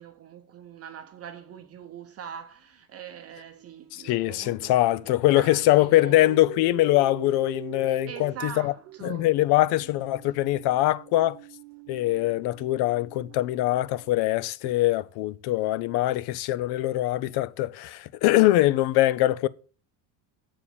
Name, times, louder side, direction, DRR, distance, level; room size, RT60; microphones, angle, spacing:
voice 1, 0.0-6.4 7.8-9.3 10.3-10.4, right 8 dB, 35° right, 0.7 m, -43 dB
sound 1, 1.0-1.2 3.1-14.2, right 13 dB, 90° right, 1.1 m, -45 dB
voice 2, 3.9-8.7 9.0-11.4 11.9-19.5, left 16 dB, 60° left, 0.6 m, -23 dB
7.3 x 4.5 x 6.8 m
cardioid pair, 135°, 44 cm